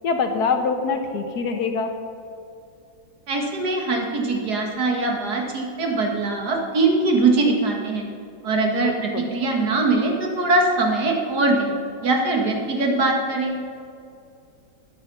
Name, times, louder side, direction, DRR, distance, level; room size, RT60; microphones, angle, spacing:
voice 1, 0.0-2.0 8.8-9.3, left 5 dB, 60° left, 5 dB, 1.4 m, -24 dB
voice 2, 3.3-8.1 8.4-11.7 12.0-13.6, right 3 dB, 55° right, 1 dB, 2.2 m, -22 dB
12.5 x 9.4 x 5.6 m, 2.5 s
omnidirectional pair, 2.1 m